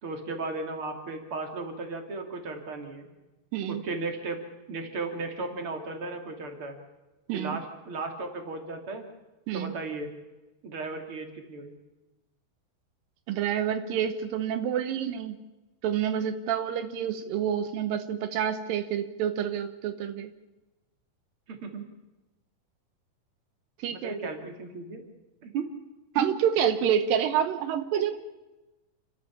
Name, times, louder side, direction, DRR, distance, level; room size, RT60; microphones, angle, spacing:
voice 1, 0.0-3.1 3.7-4.4 4.7-6.8 7.3-9.0 9.5-10.1 10.6-11.7 21.5-21.9 23.9-25.0 25.4-25.6 26.2-26.3, right 3 dB, 40° right, 3 dB, 3.5 m, -35 dB
voice 2, 3.5-3.8 7.3-7.6 9.5-9.7 13.3-15.4 15.8-20.3 23.8-24.2 26.1-28.1, right 9 dB, 85° right, 10 dB, 2.8 m, -28 dB
29.5 x 14.0 x 7.2 m, 1.1 s
omnidirectional pair, 3.9 m